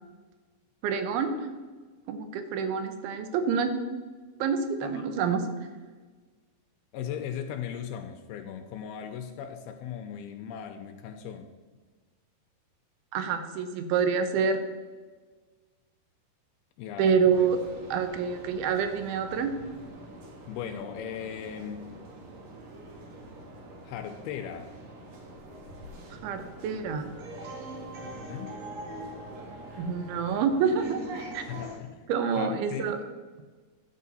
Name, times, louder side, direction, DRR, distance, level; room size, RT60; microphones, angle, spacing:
voice 1, 0.8-1.3 2.1-3.7 4.4-5.5 13.1-14.6 17.0-17.6 17.9-19.5 26.1-27.1 29.8-31.1 31.3-31.4 32.1-33.0, right 6 dB, 75° right, 8 dB, 2.7 m, -27 dB
voice 2, 4.8-5.1 6.9-11.5 16.8-17.5 20.5-21.9 23.8-24.7 28.0-28.6 31.5-32.1 32.3-32.9, left 8 dB, 80° left, 7 dB, 2.4 m, -38 dB
sound 1, 17.3-31.8, right 1 dB, 60° right, 1.8 m, -44 dB
11.0 x 7.5 x 4.1 m, 1.4 s
omnidirectional pair, 4.7 m